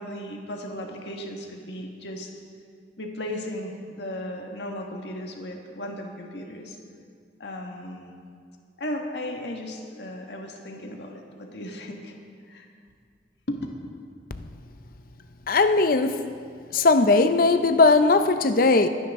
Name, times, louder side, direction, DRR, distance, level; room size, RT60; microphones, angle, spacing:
voice 1, 0.0-2.3 3.0-6.8 7.4-8.1 8.8-12.1 12.5-12.7 13.5-13.6 18.7-18.9, left 1 dB, 75° left, 1 dB, 1.6 m, -35 dB
voice 2, 15.5-16.2 16.7-18.9, left 3 dB, 55° left, 9 dB, 0.6 m, -19 dB
22.5 x 10.0 x 3.7 m, 2.2 s
head